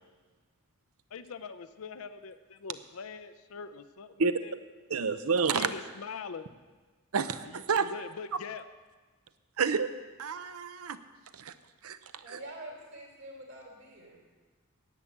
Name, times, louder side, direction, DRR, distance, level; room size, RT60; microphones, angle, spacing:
voice 1, 1.1-4.6 5.5-6.5 7.4-8.7, left 5 dB, 75° left, 12 dB, 0.5 m, -43 dB
voice 2, 4.9-5.7 7.1-7.9 9.6-9.9 10.2-11.0 11.3-11.5 11.8-12.0 12.3-12.4, right 5 dB, 85° right, 12 dB, 0.7 m, -29 dB
voice 3, 12.2-14.2, right 1 dB, 60° right, -1 dB, 3.4 m, -46 dB
11.0 x 9.0 x 7.2 m, 1.3 s
head